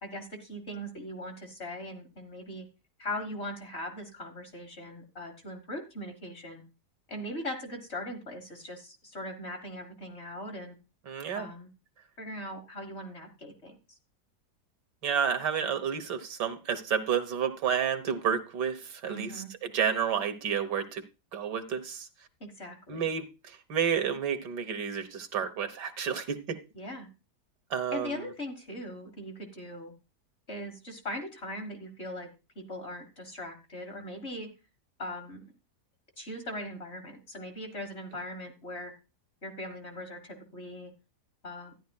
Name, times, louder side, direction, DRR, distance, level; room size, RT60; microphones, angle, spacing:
voice 1, 0.0-2.7 3.0-6.6 7.1-10.8 11.3-11.7 12.2-14.0 19.1-19.5 22.4-23.0 26.7-27.1 27.9-29.9 30.5-32.3 32.5-34.5 35.0-35.4 36.2-38.9 39.4-40.9 41.4-41.8, left 1 dB, 40° left, 1.6 m, -40 dB
voice 2, 11.1-11.5 15.0-21.0 21.3-22.1 22.9-23.3 23.7-26.6 27.7-28.1, right 7 dB, 90° right, 1.7 m, -30 dB
13.0 x 10.5 x 2.3 m
omnidirectional pair, 1.8 m